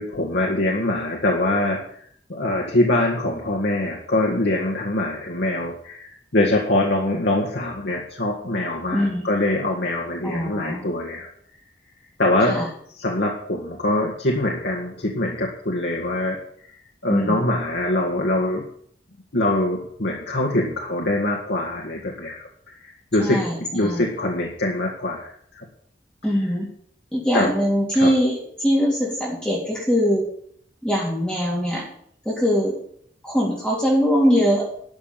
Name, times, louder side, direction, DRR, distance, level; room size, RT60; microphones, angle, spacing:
voice 1, 0.0-1.8 2.3-11.3 12.2-12.7 13.0-16.4 17.0-18.6 19.3-22.5 22.8-23.4 23.7-25.7 27.3-27.5 27.9-28.1, left 1 dB, 85° left, -2 dB, 1.9 m, -23 dB
voice 2, 8.9-9.2 10.2-10.9 12.4-12.7 17.1-17.4 23.2-24.0 26.2-26.7 27.1-30.3 30.8-31.8 32.2-32.7 33.2-34.7, equal, 5° left, -5 dB, 3.3 m, -22 dB
12.0 x 5.9 x 9.1 m, 0.64 s
head